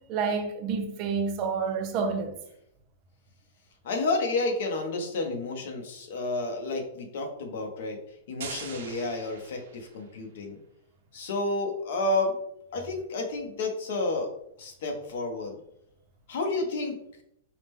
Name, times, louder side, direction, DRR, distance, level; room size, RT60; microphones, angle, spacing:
voice 1, 0.1-2.3, right 5 dB, 30° right, 0.4 m, -29 dB
voice 2, 3.8-8.0 8.3-10.6 11.1-12.4 12.7-14.3 14.6-15.5 16.3-17.0, left 2 dB, 55° left, 0.8 m, -30 dB
sound 1, 8.4-10.2, right 6 dB, 70° right, 0.6 m, -42 dB
4.7 x 2.2 x 3.4 m
supercardioid pair, 175°, 0 cm